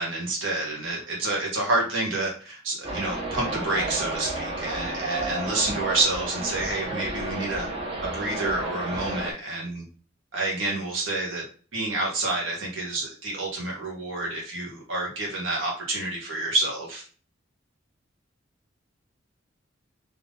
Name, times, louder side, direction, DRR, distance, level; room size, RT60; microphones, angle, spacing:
voice 1, 0.0-7.7 8.0-9.8 10.3-11.4 11.7-17.0, right 2 dB, 70° right, -3 dB, 1.2 m, -28 dB
sound 1, 2.8-9.3, right 2 dB, 30° right, 0.9 m, -32 dB
3.5 x 2.9 x 3.8 m, 0.40 s
head